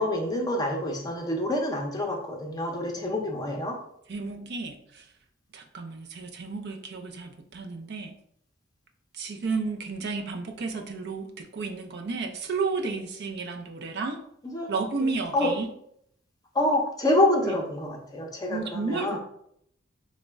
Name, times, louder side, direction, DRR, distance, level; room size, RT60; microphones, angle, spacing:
voice 1, 0.0-3.8 14.4-14.7 15.0-15.5 16.5-19.2, left 1 dB, 20° left, 1 dB, 0.5 m, -27 dB
voice 2, 4.1-5.1 5.5-8.1 9.1-14.2 14.7-15.7 17.4-17.5 18.5-19.2, right 4 dB, 55° right, 4 dB, 0.4 m, -32 dB
4.0 x 2.1 x 3.4 m, 0.70 s
head